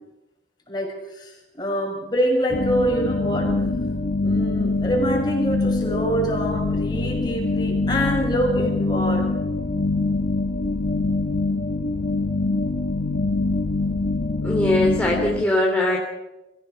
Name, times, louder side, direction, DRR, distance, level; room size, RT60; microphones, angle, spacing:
voice 1, 0.7-1.3 1.6-3.5 4.2-9.3, right 1 dB, 25° left, 0 dB, 6.8 m, -25 dB
sound 1, 2.5-15.4, left 3 dB, 55° left, 1.3 m, -24 dB
voice 2, 14.4-16.0, left 1 dB, 10° left, -2 dB, 3.0 m, -21 dB
24.5 x 16.0 x 6.8 m, 1.0 s
head